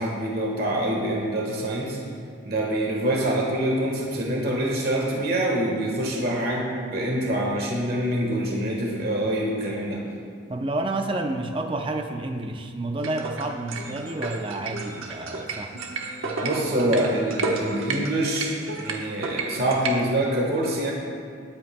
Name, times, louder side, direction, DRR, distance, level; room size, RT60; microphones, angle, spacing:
voice 1, 0.0-2.0 2.4-10.0 16.4-18.5 18.8-20.9, right 1 dB, 50° right, -2 dB, 1.4 m, -25 dB
voice 2, 10.5-15.8, right 2 dB, 25° right, 5 dB, 0.6 m, -30 dB
sound 1, 13.0-20.0, right 3 dB, 90° right, 1.1 m, -32 dB
20.5 x 8.7 x 2.2 m, 2.2 s
head